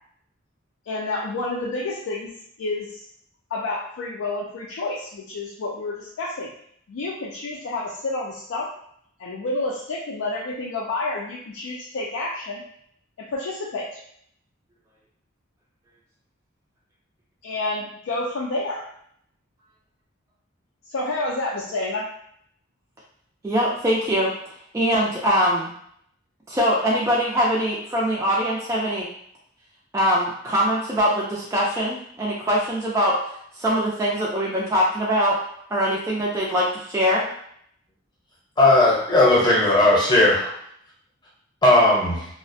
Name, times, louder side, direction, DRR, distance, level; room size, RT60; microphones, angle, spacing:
voice 1, 0.9-2.3 2.6-3.0 3.5-6.5 6.9-8.7 9.2-12.6 13.2-14.0 17.4-18.9 20.9-22.1, left 2 dB, 80° left, -4 dB, 0.4 m, -29 dB
voice 2, 23.4-24.3 24.7-25.7 26.5-29.1 29.9-33.2 33.5-35.4 35.7-37.2, equal, 15° right, -4 dB, 0.3 m, -22 dB
voice 3, 38.6-40.5 41.6-42.3, left 2 dB, 20° left, -5 dB, 0.8 m, -17 dB
2.4 x 2.0 x 2.6 m, 0.68 s
head